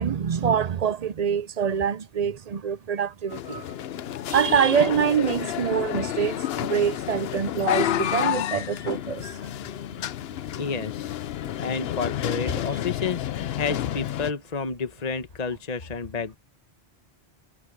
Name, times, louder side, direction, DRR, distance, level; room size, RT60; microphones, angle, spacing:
voice 1, 0.0-3.6 4.3-9.3, right 7 dB, 45° right, 0.6 m, -25 dB
sound 1, 3.3-14.3, left 11 dB, 75° left, 0.8 m, -30 dB
voice 2, 10.5-16.4, left 5 dB, 40° left, 1.1 m, -30 dB
omnidirectional pair, 1.1 m